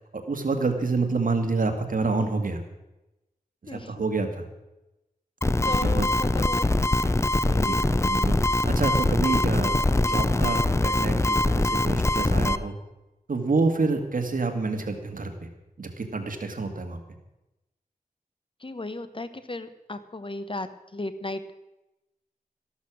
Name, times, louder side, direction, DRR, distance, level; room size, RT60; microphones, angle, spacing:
voice 1, 0.1-2.6 3.7-4.5 5.8-6.1 7.5-7.7 8.0-8.3 8.6-9.7 10.0-12.7 13.3-15.3 15.8-17.0, right 3 dB, 65° right, 5 dB, 2.0 m, -27 dB
voice 2, 3.7-4.0 5.6-6.8 7.3-7.8 18.6-21.5, left 2 dB, 35° left, 11 dB, 1.0 m, -36 dB
sound 1, 5.4-12.6, left 2 dB, 20° left, 0.6 m, -23 dB
13.5 x 12.5 x 6.2 m, 0.97 s
wide cardioid pair, 75°, 15 cm